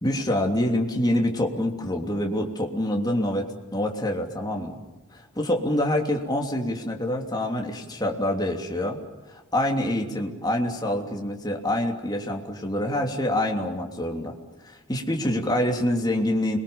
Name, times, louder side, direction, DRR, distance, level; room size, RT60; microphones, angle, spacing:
voice 1, 0.0-4.8 5.1-9.0 9.3-14.3 14.6-16.6, left 1 dB, 20° left, 1 dB, 3.0 m, -26 dB
29.5 x 23.0 x 7.0 m, 1.2 s
head